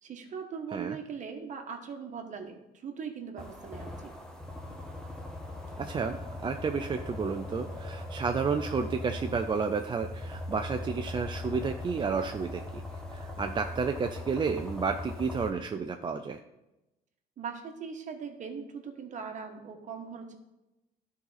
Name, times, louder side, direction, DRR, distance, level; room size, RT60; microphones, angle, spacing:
voice 1, 0.0-4.1 17.4-20.3, right 6 dB, 45° right, 5 dB, 1.2 m, -40 dB
sound 1, 3.4-15.5, left 1 dB, 5° left, 1.2 m, -40 dB
voice 2, 5.8-12.8 13.1-16.4, right 5 dB, 30° right, 6 dB, 0.4 m, -31 dB
12.0 x 4.1 x 4.1 m, 0.96 s
cardioid pair, 110°, 17 cm